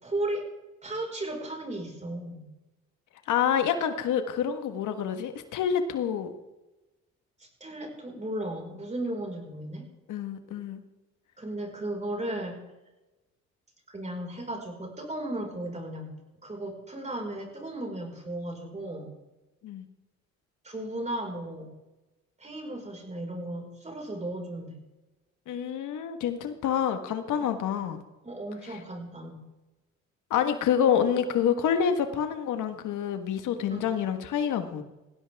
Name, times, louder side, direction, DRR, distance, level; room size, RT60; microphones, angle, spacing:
voice 1, 0.0-0.5 0.8-2.5 7.4-9.9 11.4-12.6 13.9-16.1 16.4-19.1 20.6-21.7 22.4-24.8 27.8-27.9 28.2-29.4 33.7-33.8, right 1 dB, 25° right, 1 dB, 5.0 m, -35 dB
voice 2, 3.3-6.3 10.1-10.8 19.6-19.8 25.5-28.0 28.6-28.8 30.3-34.8, left 8 dB, 80° left, 8 dB, 1.5 m, -27 dB
19.0 x 16.0 x 3.5 m, 1.1 s
cardioid pair, 90°, 30 cm